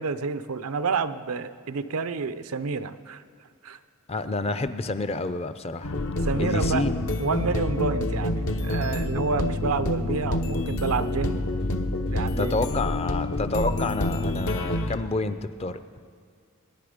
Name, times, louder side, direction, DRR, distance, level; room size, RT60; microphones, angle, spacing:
voice 1, 0.0-3.2 3.6-3.8 6.3-6.9 7.2-11.5 11.7-11.8 12.1-12.6, right 4 dB, 85° right, 12 dB, 0.6 m, -29 dB
voice 2, 4.1-5.9 6.3-6.9 12.4-15.8, left 3 dB, 30° left, 12 dB, 0.5 m, -28 dB
sound 1, 5.8-15.0, left 1 dB, 65° left, 0.8 m, -27 dB
21.0 x 10.0 x 5.0 m, 2.1 s
head